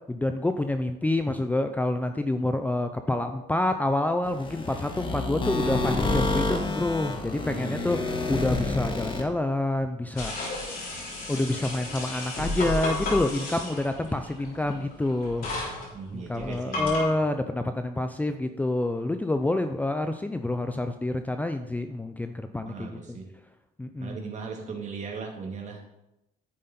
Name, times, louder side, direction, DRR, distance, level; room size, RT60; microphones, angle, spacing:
voice 1, 0.1-10.3 11.3-15.5 16.1-23.2 23.8-24.2, left 2 dB, 10° left, 8 dB, 0.5 m, -28 dB
sound 1, 4.2-9.2, left 2 dB, 30° left, 1.6 m, -29 dB
voice 2, 7.5-8.0 15.9-17.0 22.6-23.3 24.0-25.8, right 5 dB, 45° right, 1 dB, 2.4 m, -38 dB
sound 2, 10.2-17.0, left 2 dB, 55° left, 3.7 m, -33 dB
10.5 x 7.5 x 4.3 m, 0.89 s
cardioid pair, 110°, 17 cm